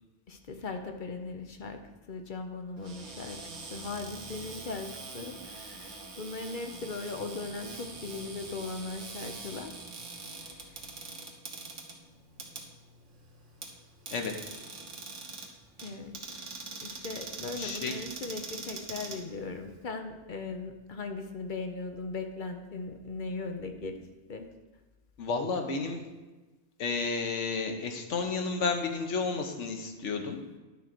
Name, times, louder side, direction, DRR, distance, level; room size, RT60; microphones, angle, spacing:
voice 1, 0.3-1.8 2.1-3.4 3.7-9.7 10.7-10.8 15.8-16.2 16.8-24.0 24.3-24.5, left 3 dB, 50° left, 5 dB, 0.8 m, -38 dB
Cupboard open or close, 2.8-19.8, right 3 dB, 90° right, 1.5 m, -44 dB
voice 2, 17.6-17.9 25.2-26.0 26.8-30.4, left 4 dB, 85° left, 4 dB, 1.2 m, -31 dB
10.5 x 3.8 x 6.0 m, 1.2 s
omnidirectional pair, 1.2 m